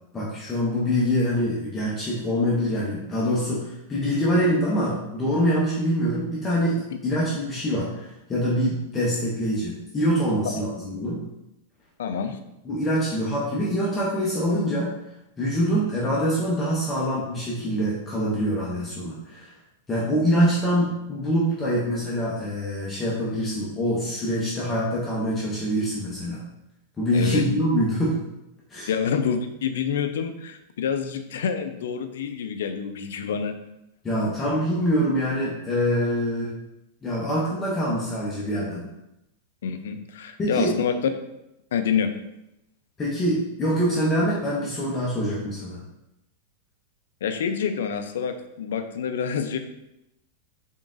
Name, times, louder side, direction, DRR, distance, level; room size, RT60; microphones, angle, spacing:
voice 1, 0.1-11.2 12.6-14.9 15.4-19.5 19.9-26.4 27.0-28.2 28.7-28.9 34.0-36.5 37.0-38.9 40.4-40.7 43.0-45.8, equal, 10° left, -7 dB, 0.5 m, -25 dB
voice 2, 12.0-12.4 27.1-27.4 28.9-33.5 39.6-41.0 41.7-42.1 47.2-49.6, left 7 dB, 80° left, 8 dB, 0.4 m, -27 dB
3.9 x 3.6 x 2.5 m, 0.88 s
supercardioid pair, 180°, 0 cm